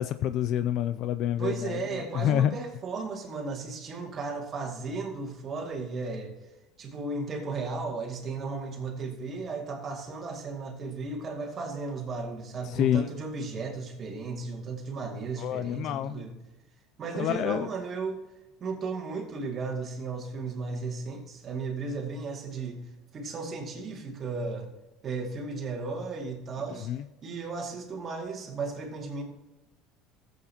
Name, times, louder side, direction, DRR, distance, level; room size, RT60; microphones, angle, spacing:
voice 1, 0.0-1.8 2.1-2.5 12.6-13.1 15.4-16.2 17.2-17.7 26.9-27.0, left 11 dB, 55° left, 13 dB, 0.3 m, -27 dB
voice 2, 1.4-6.3 6.8-16.3 17.0-18.2 18.6-22.8 23.1-24.7 25.0-26.9 27.2-29.2, right 4 dB, 35° right, 2 dB, 2.2 m, -35 dB
14.5 x 8.1 x 2.9 m, 1.0 s
supercardioid pair, 125°, 0 cm